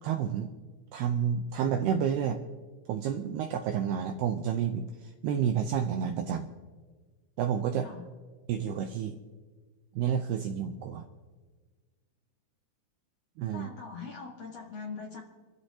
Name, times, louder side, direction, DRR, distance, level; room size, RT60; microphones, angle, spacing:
voice 1, 0.0-0.5 0.9-2.4 2.9-6.5 7.4-7.9 8.5-9.2 10.0-11.0 13.4-13.7, right 8 dB, 90° right, 5 dB, 2.3 m, -30 dB
voice 2, 13.5-15.2, left 5 dB, 60° left, -1 dB, 1.8 m, -42 dB
28.0 x 14.0 x 2.9 m, 1.4 s
omnidirectional pair, 5.5 m